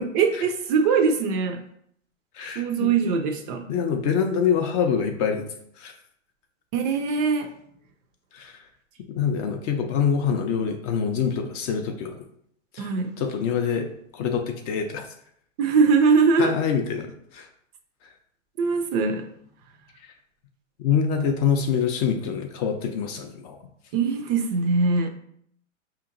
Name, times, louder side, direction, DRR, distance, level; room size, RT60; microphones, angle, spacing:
voice 1, 0.1-1.6 2.6-3.7 6.7-7.5 12.8-13.1 15.6-16.6 18.6-19.3 23.9-25.1, right 5 dB, 35° right, 6 dB, 0.4 m, -22 dB
voice 2, 2.3-2.9 3.7-5.5 5.8-5.9 8.3-8.6 9.1-12.2 12.7-12.9 13.2-13.9 14.1-15.0 16.4-17.5 20.8-23.6, left 7 dB, 35° left, 4 dB, 0.4 m, -25 dB
4.9 x 2.9 x 2.5 m, 0.69 s
hypercardioid pair, 115°, 37 cm